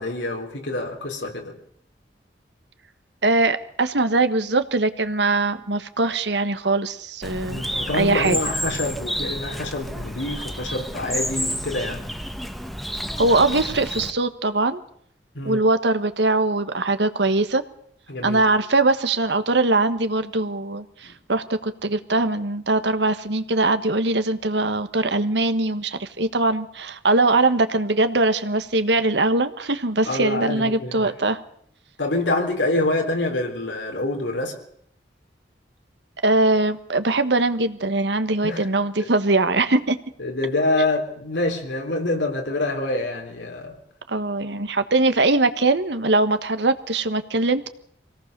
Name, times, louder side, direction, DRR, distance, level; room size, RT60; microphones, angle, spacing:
voice 1, 0.0-1.5 7.5-12.1 15.3-15.6 18.1-18.4 21.0-21.1 30.1-31.1 32.0-34.6 38.4-38.7 39.0-39.1 40.2-43.8, left 2 dB, 85° left, 2 dB, 3.7 m, -26 dB
voice 2, 3.2-7.6 7.9-8.4 13.2-14.8 15.4-17.6 18.2-31.4 36.2-40.0 44.1-47.7, right 2 dB, 70° right, 10 dB, 1.5 m, -21 dB
Bird, 7.2-14.1, equal, ahead, 1.3 m, -30 dB
25.0 x 17.5 x 6.8 m, 0.68 s
head